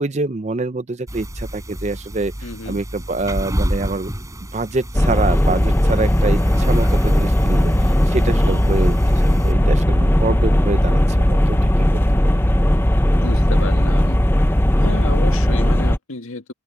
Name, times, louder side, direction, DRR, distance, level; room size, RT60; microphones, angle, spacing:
voice 1, 0.0-4.1 4.5-12.0, right 3 dB, 35° right, 0.5 m, -25 dB
sound 1, 1.1-9.5, equal, 15° right, 7.2 m, -30 dB
voice 2, 2.4-2.8 13.2-14.2 14.8-16.5, left 3 dB, 85° left, 1.7 m, -31 dB
sound 2, 4.9-16.0, left 1 dB, 10° left, 0.7 m, -17 dB
open air
head